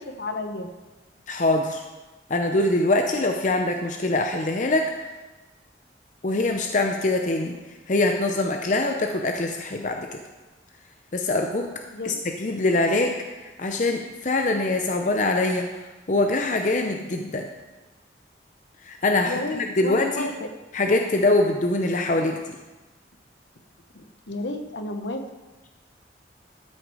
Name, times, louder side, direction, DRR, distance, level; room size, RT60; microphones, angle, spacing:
voice 1, 0.2-0.7 11.9-12.2 19.2-20.5 23.9-25.2, left 2 dB, 70° left, 6 dB, 1.0 m, -32 dB
voice 2, 1.3-1.8 2.3-5.0 6.2-7.6 7.9-10.2 11.1-11.7 12.0-15.8 16.1-17.5 18.8-20.3 20.7-22.6, left 2 dB, 45° left, 4 dB, 0.6 m, -23 dB
12.5 x 6.2 x 4.8 m, 1.2 s
head